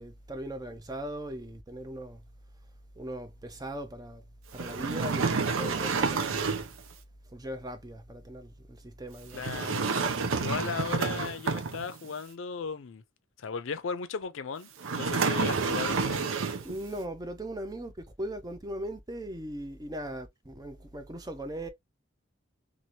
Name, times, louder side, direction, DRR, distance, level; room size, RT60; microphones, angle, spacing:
voice 1, 0.0-2.2 3.0-4.2 4.5-6.6 7.3-9.5 16.6-21.7, right 1 dB, 20° right, 0.5 m, -39 dB
sound 1, 4.5-6.8 9.3-12.1 14.8-16.8, right 4 dB, 80° right, 0.5 m, -29 dB
voice 2, 9.3-9.9 10.4-13.0 13.4-16.3, left 5 dB, 75° left, 0.5 m, -36 dB
2.8 x 2.5 x 2.9 m
head